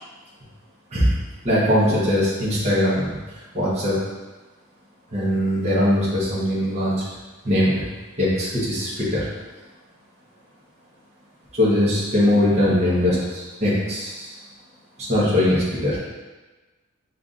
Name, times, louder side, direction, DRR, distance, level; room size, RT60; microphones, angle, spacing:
voice 1, 1.4-3.2 3.5-4.0 5.1-7.0 7.4-7.8 8.2-9.3 11.6-14.3 15.1-16.0, left 1 dB, 30° right, -9 dB, 1.0 m, -20 dB
7.1 x 2.5 x 2.5 m, 1.2 s
head